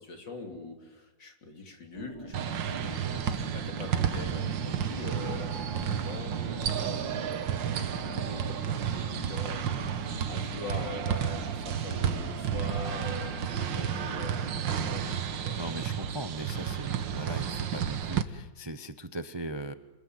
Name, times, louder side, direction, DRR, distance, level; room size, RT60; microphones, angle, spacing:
voice 1, 0.0-15.6, left 3 dB, 70° left, 3 dB, 3.9 m, -43 dB
sound 1, 1.9-15.0, right 2 dB, 35° right, 2.5 m, -45 dB
sound 2, 2.3-18.2, right 8 dB, 80° right, 1.9 m, -32 dB
voice 2, 15.6-19.7, right 1 dB, 20° right, 10 dB, 0.7 m, -39 dB
28.5 x 21.0 x 9.2 m, 1.0 s
omnidirectional pair, 2.0 m